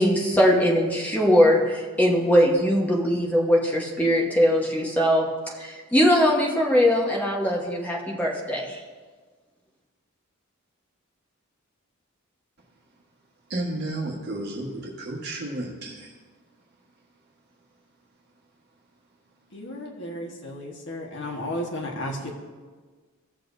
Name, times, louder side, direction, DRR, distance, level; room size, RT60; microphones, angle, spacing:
voice 1, 0.0-8.8, equal, 5° left, -2 dB, 1.2 m, -21 dB
voice 2, 13.5-16.1, right 2 dB, 50° right, -3 dB, 1.5 m, -32 dB
voice 3, 19.5-22.3, left 1 dB, 55° left, 0 dB, 1.5 m, -33 dB
16.5 x 6.8 x 2.7 m, 1.4 s
head